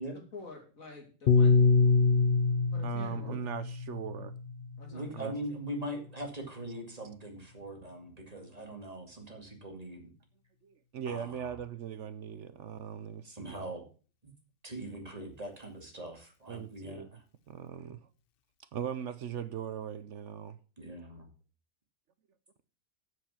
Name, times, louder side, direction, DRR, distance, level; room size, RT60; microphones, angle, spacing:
voice 1, 0.1-1.8 2.7-3.3 4.8-5.1, left 3 dB, 75° left, 3.2 m, -48 dB
Piano, 1.3-5.7, left 4 dB, 55° left, 0.7 m, -26 dB
voice 2, 2.8-4.3 5.1-5.3 10.6-13.6 16.5-17.1 17.5-18.1 18.7-20.6, right 8 dB, 65° right, 0.9 m, -39 dB
voice 3, 4.9-10.1 11.1-11.5 13.3-13.8 14.6-17.2 20.8-21.3, right 1 dB, 25° right, 2.4 m, -41 dB
8.0 x 7.3 x 7.2 m
omnidirectional pair, 1.4 m